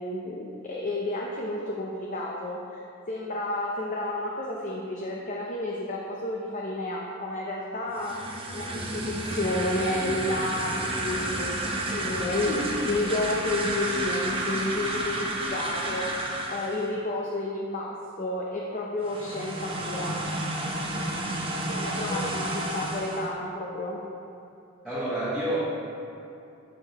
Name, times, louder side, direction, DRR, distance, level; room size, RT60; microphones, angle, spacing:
voice 1, 0.0-8.2 8.5-20.2 21.7-24.0, left 1 dB, 40° left, -2 dB, 0.6 m, -31 dB
sound 1, 7.9-16.9 19.0-23.3, right 1 dB, 25° right, 0.7 m, -31 dB
voice 2, 24.8-25.6, right 1 dB, ahead, -13 dB, 1.3 m, -30 dB
11.5 x 4.7 x 2.9 m, 2.7 s
head